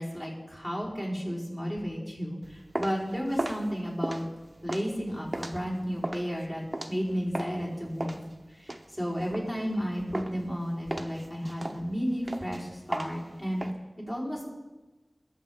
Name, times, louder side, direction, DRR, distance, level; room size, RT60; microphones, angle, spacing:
voice 1, 0.0-4.2 4.6-8.2 8.5-13.7 14.0-14.5, equal, 20° left, -5 dB, 4.6 m, -33 dB
sound 1, 2.4-7.6 8.0-9.8 10.1-10.5 10.9-13.7, right 1 dB, 35° right, 0.9 m, -36 dB
21.0 x 7.3 x 3.9 m, 1.1 s
wide cardioid pair, 55°, 0 cm